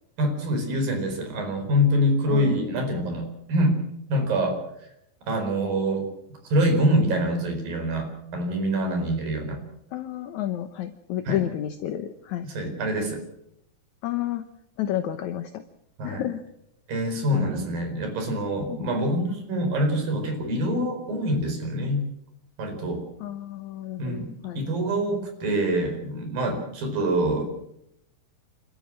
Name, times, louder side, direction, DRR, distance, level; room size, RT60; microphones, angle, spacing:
voice 1, 0.2-3.8 4.1-4.6 5.3-6.1 6.4-9.6 11.3-11.4 12.5-13.2 16.0-16.2 16.9-22.1 22.6-23.0 24.0-27.4, equal, 75° right, 6 dB, 6.2 m, -25 dB
voice 2, 2.3-2.6 9.9-12.5 14.0-14.4 14.8-15.6 16.0-16.4 17.3-17.6 18.7-18.9 23.2-24.6, left 12 dB, 70° left, 8 dB, 2.1 m, -31 dB
29.5 x 13.0 x 7.7 m, 0.77 s
omnidirectional pair, 4.1 m